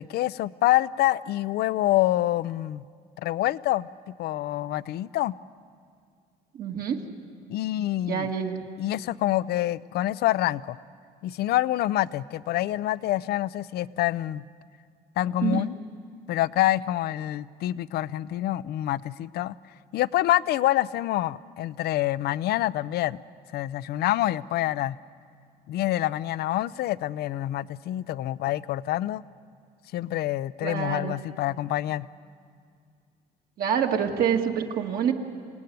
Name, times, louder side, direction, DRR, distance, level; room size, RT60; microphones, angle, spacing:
voice 1, 0.0-2.8 3.2-5.4 7.5-8.3 8.8-10.8 11.2-14.4 15.2-15.7 16.3-19.5 19.9-23.2 23.5-25.0 25.7-29.2 29.9-32.1, left 14 dB, 70° left, 18 dB, 0.6 m, -26 dB
voice 2, 6.5-7.0 8.0-8.7 15.4-15.7 30.6-31.2 33.6-35.1, right 8 dB, 60° right, 2 dB, 2.2 m, -26 dB
27.5 x 18.0 x 9.4 m, 2.2 s
cardioid pair, 110°, 17 cm